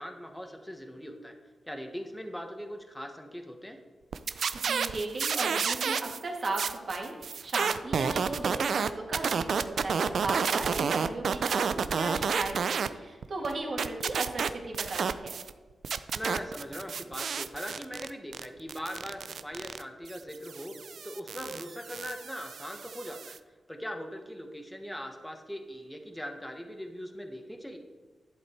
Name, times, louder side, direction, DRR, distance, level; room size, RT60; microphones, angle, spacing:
voice 1, 0.0-1.4 1.6-3.8 10.8-10.9 16.1-23.4 23.7-27.8, equal, 5° left, 4 dB, 1.4 m, -40 dB
sound 1, 4.1-6.2 6.4-12.9 13.2-15.5 15.8-23.4, right 6 dB, 70° right, 0.5 m, -31 dB
voice 2, 4.5-15.4, right 2 dB, 55° right, 0 dB, 2.6 m, -36 dB
11.0 x 7.9 x 4.6 m, 1.3 s
cardioid pair, 70°, 0 cm